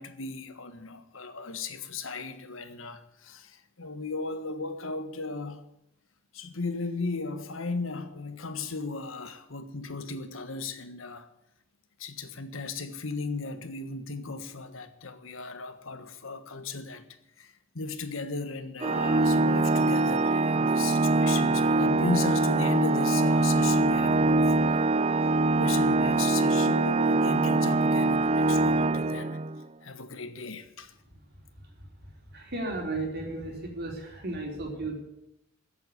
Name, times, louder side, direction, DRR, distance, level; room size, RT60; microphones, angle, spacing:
voice 1, 0.0-5.6 6.3-11.3 12.0-17.0 17.4-25.0 25.6-29.4 29.8-30.9, left 4 dB, 80° left, 1.6 m, -36 dB
Organ, 18.8-29.6, right 2 dB, 30° right, 0.4 m, -23 dB
voice 2, 32.3-35.0, right 2 dB, 55° right, 4.2 m, -34 dB
14.5 x 8.2 x 9.7 m
head